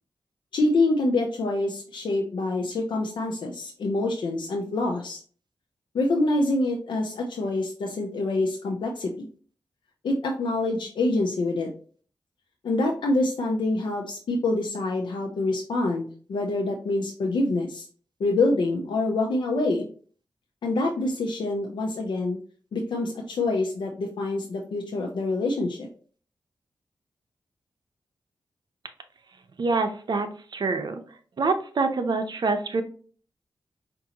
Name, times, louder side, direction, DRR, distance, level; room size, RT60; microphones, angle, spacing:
voice 1, 0.5-5.2 5.9-9.3 10.0-11.7 12.6-17.9 18.2-19.9 20.6-22.4 22.7-25.9, left 2 dB, 90° left, 0 dB, 0.6 m, -26 dB
voice 2, 29.6-31.0 31.4-32.8, right 3 dB, 65° right, 7 dB, 0.7 m, -26 dB
5.2 x 2.6 x 2.8 m, 0.43 s
cardioid pair, 65°, 8 cm